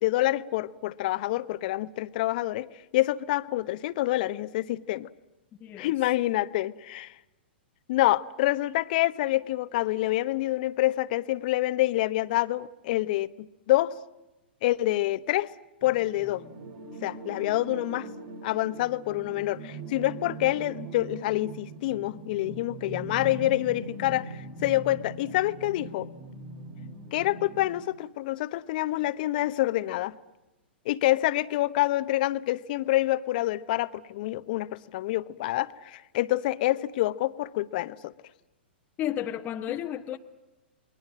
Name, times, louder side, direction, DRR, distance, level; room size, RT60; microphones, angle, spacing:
voice 1, 0.0-2.7 2.9-5.1 5.8-7.1 7.9-13.9 14.6-15.5 15.8-16.4 17.0-18.1 18.4-26.1 27.1-30.1 30.8-38.1, left 16 dB, 50° left, 1.0 m, -27 dB
voice 2, 5.6-5.9 39.0-40.2, left 11 dB, 30° left, 1.2 m, -32 dB
sound 1, 15.8-27.8, right 2 dB, 55° right, 3.7 m, -41 dB
29.0 x 21.5 x 7.5 m
hypercardioid pair, 110°, 6 cm